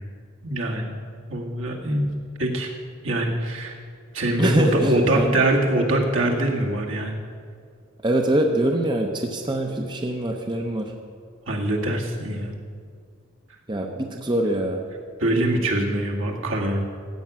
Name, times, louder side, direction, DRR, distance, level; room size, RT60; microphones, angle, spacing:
voice 1, 0.4-0.9 1.3-2.1 2.4-2.7 3.0-3.8 4.1-7.2 11.5-12.6 15.2-16.8, right 1 dB, 70° right, -1 dB, 1.9 m, -23 dB
voice 2, 4.4-5.3 8.0-10.9 13.7-14.8, right 1 dB, 20° right, 2 dB, 0.7 m, -24 dB
15.0 x 8.4 x 6.1 m, 2.1 s
head